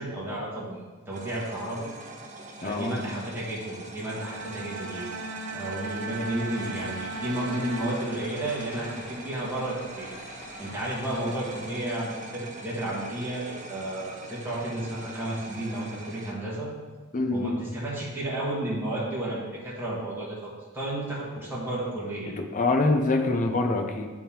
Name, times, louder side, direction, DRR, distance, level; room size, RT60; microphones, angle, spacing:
voice 1, 0.0-1.9 2.6-5.1 5.5-10.1 10.6-16.7 17.3-22.3, right 1 dB, 10° right, -7 dB, 1.4 m, -32 dB
sound 1, 1.1-16.3, right 2 dB, 35° right, 0.8 m, -43 dB
voice 2, 2.6-3.0 17.1-17.7 22.4-24.1, left 2 dB, 35° left, 4 dB, 0.7 m, -25 dB
Bowed string instrument, 4.0-8.7, right 3 dB, 70° right, 0.5 m, -38 dB
sound 2, 6.1-11.7, left 1 dB, 55° left, 1.5 m, -45 dB
9.0 x 3.7 x 4.3 m, 1.4 s
head